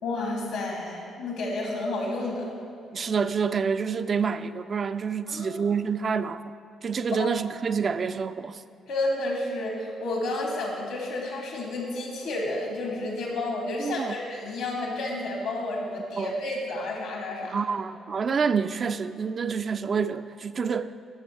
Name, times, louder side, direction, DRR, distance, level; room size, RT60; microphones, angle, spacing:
voice 1, 0.0-2.5 5.3-5.7 7.1-7.3 8.9-17.6, left 2 dB, 75° left, 2.0 m, -31 dB
voice 2, 2.9-6.4 6.8-8.6 13.8-14.2 16.2-16.3 17.5-20.9, right 6 dB, 45° right, 0.3 m, -27 dB
13.5 x 6.8 x 3.3 m
hypercardioid pair, 45°, 0 cm